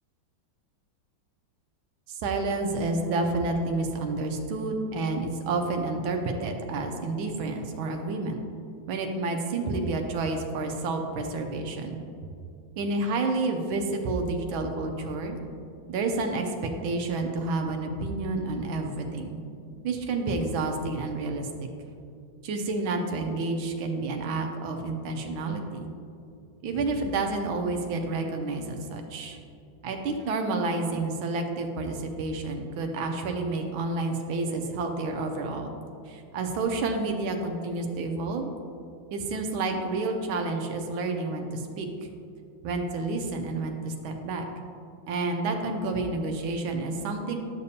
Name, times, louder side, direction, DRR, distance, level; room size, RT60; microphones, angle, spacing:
voice 1, 2.1-8.4 8.9-12.0 12.8-15.4 15.9-19.4 19.8-21.5 22.4-25.9 26.6-29.4 29.8-35.7 36.1-38.5 39.1-41.9 42.6-44.5 45.1-47.4, right 3 dB, 85° right, 3 dB, 1.5 m, -29 dB
11.0 x 6.6 x 2.7 m, 2.5 s
omnidirectional pair, 2.2 m